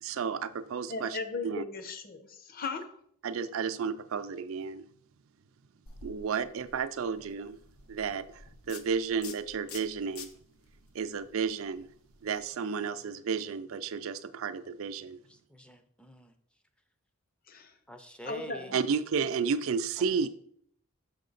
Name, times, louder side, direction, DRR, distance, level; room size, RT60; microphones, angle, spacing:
voice 1, 0.0-1.2 1.4-1.6 3.2-4.9 6.0-7.6 7.9-8.4 8.7-10.3 10.9-11.9 12.2-15.2 18.7-20.3, right 6 dB, 70° right, 12 dB, 0.4 m, -32 dB
voice 2, 0.9-2.9 17.5-17.7 18.3-18.8, left 4 dB, 45° left, 8 dB, 0.7 m, -37 dB
Spraying Cologne, 5.9-12.5, left 5 dB, 80° left, 0.7 m, -50 dB
voice 3, 15.3-16.3 17.9-18.8 20.0-20.1, right 1 dB, 5° left, 7 dB, 0.4 m, -46 dB
6.5 x 5.7 x 3.9 m, 0.66 s
head